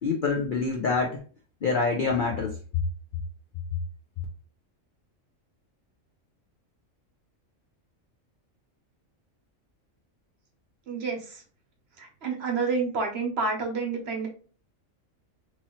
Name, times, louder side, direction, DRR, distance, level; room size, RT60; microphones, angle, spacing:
voice 1, 0.0-1.2 1.6-2.8, left 4 dB, 65° left, 0 dB, 0.5 m, -26 dB
voice 2, 10.9-11.4 12.0-14.3, right 4 dB, 55° right, 2 dB, 1.0 m, -29 dB
3.0 x 2.7 x 2.9 m, 0.40 s
omnidirectional pair, 1.4 m